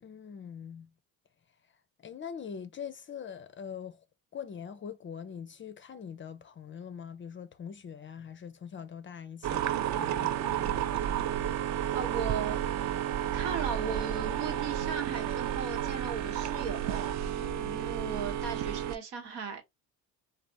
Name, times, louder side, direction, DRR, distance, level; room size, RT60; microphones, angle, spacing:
voice 1, 0.0-0.9 2.0-4.0 4.3-10.8 17.4-17.8, left 7 dB, 30° left, 0.4 m, -43 dB
sound 1, 9.4-19.0, right 10 dB, 40° right, 0.4 m, -31 dB
voice 2, 11.9-12.9 13.3-17.1 17.7-19.6, right 6 dB, 80° right, 1.0 m, -37 dB
3.4 x 2.4 x 2.6 m
hypercardioid pair, 65°, 45 cm